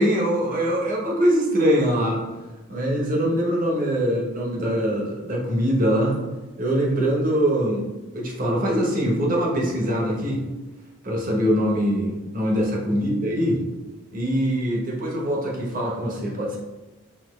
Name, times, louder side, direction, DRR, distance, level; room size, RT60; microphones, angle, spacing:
voice 1, 0.0-2.2 2.7-6.2 6.6-10.4 11.0-13.6 14.1-16.6, equal, 40° right, -2 dB, 0.9 m, -23 dB
5.7 x 2.8 x 3.2 m, 1.2 s
head